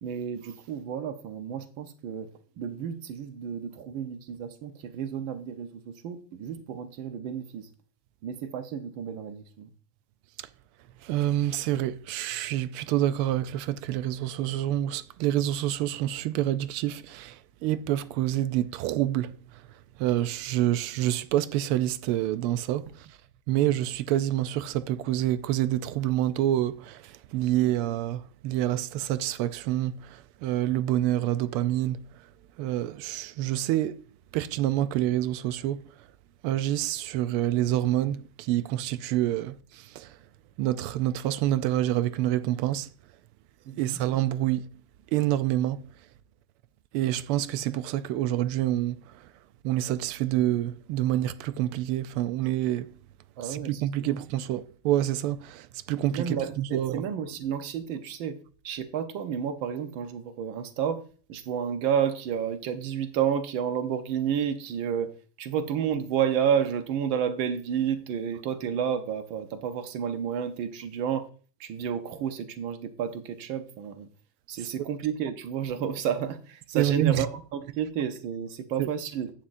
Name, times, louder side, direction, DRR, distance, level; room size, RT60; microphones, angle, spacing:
voice 1, 0.0-2.3 2.6-7.7 8.2-9.7 43.7-44.0 53.4-54.2 56.1-58.4 58.6-61.0 61.3-65.1 65.4-71.3 71.6-74.1 74.5-79.3, right 8 dB, 70° right, 1.6 m, -31 dB
voice 2, 11.0-23.2 23.5-32.3 32.6-34.0 34.3-36.1 36.4-40.2 40.6-42.9 43.8-44.7 45.1-45.9 46.9-49.3 49.6-53.0 53.4-57.0 76.7-77.3 78.8-78.9, right 13 dB, 85° right, 1.5 m, -27 dB
11.5 x 8.6 x 2.6 m
omnidirectional pair, 2.4 m